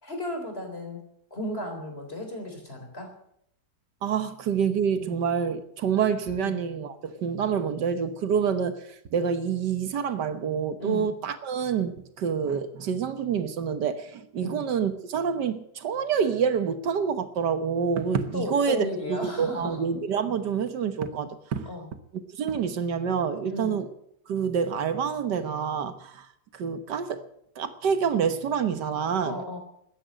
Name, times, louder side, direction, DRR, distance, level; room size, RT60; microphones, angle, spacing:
voice 1, 0.0-1.0 1.3-3.1 5.0-5.1 6.4-6.6 10.8-11.1 14.4-14.6 18.3-19.8 21.7-21.9 23.5-23.8 29.2-29.6, left 1 dB, 35° left, 4.2 m, -34 dB
voice 2, 4.0-21.7 22.4-23.9 24.3-26.3 26.5-27.2 27.6-29.4, right 7 dB, 85° right, 1.8 m, -27 dB
14.0 x 10.5 x 9.0 m
omnidirectional pair, 1.8 m